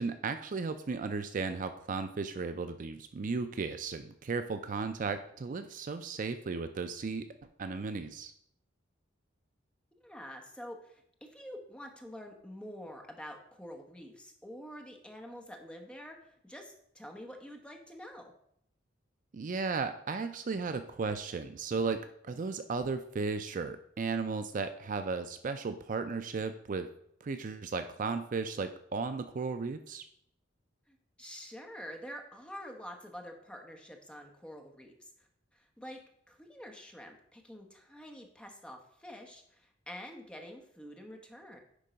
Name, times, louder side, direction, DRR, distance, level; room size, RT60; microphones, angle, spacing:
voice 1, 0.0-7.3 7.6-8.3 19.3-22.0 22.2-26.9 27.2-30.0, right 4 dB, 45° right, 9 dB, 0.4 m, -35 dB
voice 2, 10.0-18.3 30.9-36.0 36.3-41.6, equal, 5° left, 2 dB, 1.1 m, -47 dB
10.0 x 3.8 x 5.1 m, 0.70 s
head